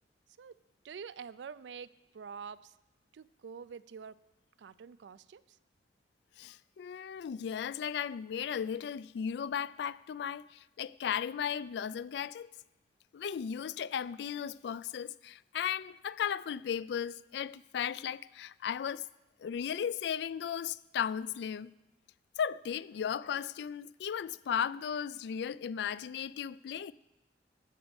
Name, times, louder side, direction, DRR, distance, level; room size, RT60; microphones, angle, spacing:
voice 1, 0.8-1.9 2.1-2.7 3.1-4.2 4.6-5.6, right 6 dB, 75° right, 0.4 m, -46 dB
voice 2, 6.4-12.5 13.1-19.1 19.4-21.7 22.4-26.9, left 8 dB, 65° left, 0.3 m, -36 dB
14.0 x 5.2 x 7.0 m
head